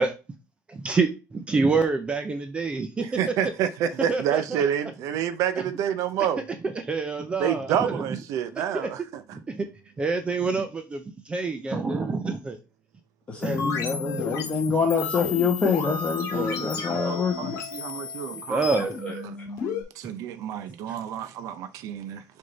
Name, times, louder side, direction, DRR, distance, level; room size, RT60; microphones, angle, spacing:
voice 1, 0.7-3.1 4.1-4.6 6.7-8.0 8.7-8.9 9.3-9.7 10.0-12.6 13.4-13.7 14.1-14.2 16.3-17.0 18.3-19.3, right 4 dB, 15° right, 0.6 m, -27 dB
voice 2, 3.0-6.4 7.4-9.2 16.6-16.7 17.0-18.6 19.2-19.4 20.0-22.2, right 9 dB, 60° right, 0.6 m, -28 dB
voice 3, 13.3-17.6, left 5 dB, 20° left, 1.2 m, -26 dB
sound 1, 13.4-19.8, left 5 dB, 45° left, 2.1 m, -33 dB
6.5 x 3.6 x 4.0 m
cardioid pair, 175°, 6 cm